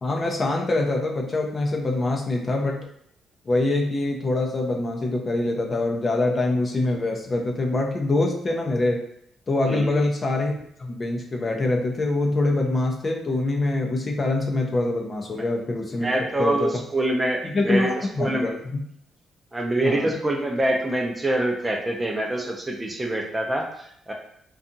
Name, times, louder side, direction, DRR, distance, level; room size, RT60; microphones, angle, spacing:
voice 1, 0.0-2.9 3.5-9.0 9.5-10.5 10.8-16.1 16.4-16.7 17.4-18.8 19.8-20.1, left 2 dB, 35° left, 1 dB, 0.5 m, -24 dB
voice 2, 9.7-10.0 16.0-18.5 19.5-24.1, right 1 dB, 15° right, 1 dB, 0.5 m, -25 dB
2.6 x 2.3 x 2.6 m, 0.69 s
cardioid pair, 90°, 0 cm